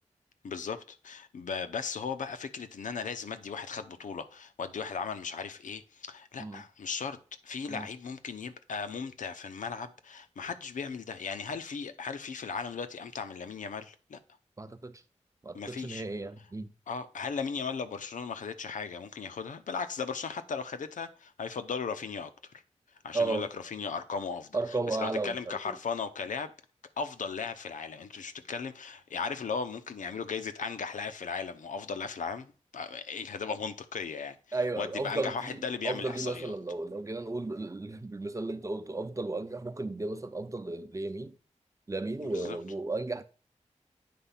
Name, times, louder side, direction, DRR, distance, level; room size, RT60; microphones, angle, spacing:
voice 1, 0.4-7.2 7.4-14.2 15.5-16.0 16.9-22.5 23.0-26.5 27.0-36.5 42.2-42.6, left 5 dB, 90° left, 0.7 m, -37 dB
voice 2, 14.6-15.0 15.4-16.7 23.1-23.5 24.5-25.7 34.5-41.3 41.9-43.2, right 2 dB, 25° right, 0.7 m, -34 dB
8.5 x 3.3 x 5.6 m
cardioid pair, 50°, 13 cm